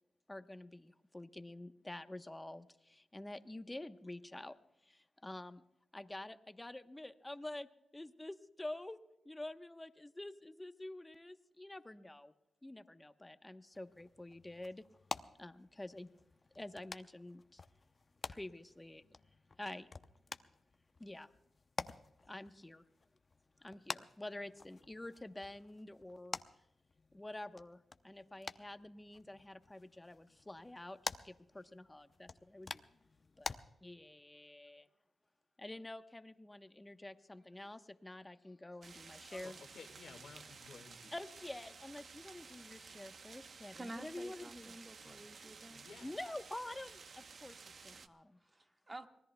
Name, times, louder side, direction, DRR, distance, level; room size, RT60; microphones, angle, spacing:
voice 1, 0.3-4.6 4.8-5.6 5.9-7.7 7.9-12.3 12.6-14.8 15.4-16.1 16.5-17.6 18.3-19.0 19.6-19.9 21.0-21.3 22.3-22.8 23.6-26.4 27.1-27.8 28.0-32.8 33.4-34.9 35.6-39.6 41.1-44.7 46.0-47.6 47.8-48.4, left 1 dB, 15° left, 9 dB, 1.0 m, -48 dB
sound 1, 13.7-33.6, left 4 dB, 45° left, 0.7 m, -49 dB
sound 2, 38.8-48.1, right 5 dB, 65° right, 0.9 m, -54 dB
voice 2, 39.3-41.1 45.0-45.2 45.7-46.1, left 5 dB, 80° left, 5 dB, 1.9 m, -55 dB
voice 3, 43.7-45.9 48.4-49.1, right 2 dB, 30° right, 4 dB, 1.7 m, -50 dB
25.0 x 19.5 x 2.3 m, 0.83 s
cardioid pair, 65°, 0 cm